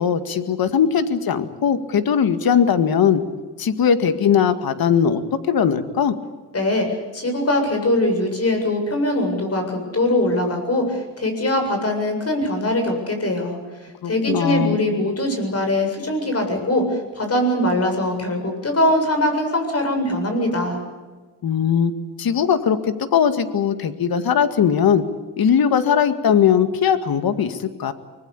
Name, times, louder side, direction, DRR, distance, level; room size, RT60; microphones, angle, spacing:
voice 1, 0.0-3.2 3.6-5.2 5.5-6.1 14.0-14.8 21.4-21.9 22.2-25.0 25.4-27.9, left 8 dB, 65° left, 10 dB, 2.1 m, -19 dB
voice 2, 6.5-6.9 7.1-13.6 14.0-20.8, left 1 dB, 40° left, 5 dB, 7.5 m, -22 dB
25.0 x 20.0 x 8.5 m, 1.3 s
cardioid pair, 90°, 39 cm